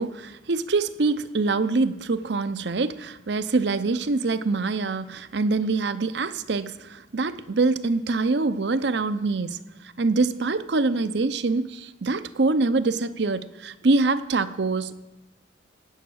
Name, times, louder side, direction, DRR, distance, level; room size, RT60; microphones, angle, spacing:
voice 1, 0.0-9.6 10.0-14.9, right 3 dB, 65° right, 0.6 m, -24 dB
16.5 x 9.6 x 6.3 m
head